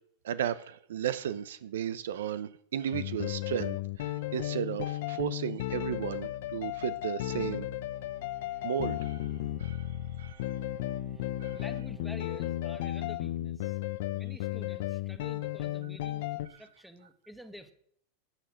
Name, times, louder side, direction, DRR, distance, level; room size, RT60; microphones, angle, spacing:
voice 1, 0.2-7.7 8.6-9.2 9.6-9.9 10.2-10.5 11.4-11.6, right 9 dB, 85° right, 15 dB, 0.7 m, -34 dB
sound 1, 2.9-16.5, left 14 dB, 70° left, 0.8 m, -34 dB
Bowed string instrument, 7.9-13.5, right 5 dB, 40° right, 2.2 m, -59 dB
voice 2, 11.1-13.8 14.1-17.7, equal, ahead, 9 dB, 1.1 m, -50 dB
11.5 x 9.1 x 5.9 m, 0.65 s
supercardioid pair, 135°, 0 cm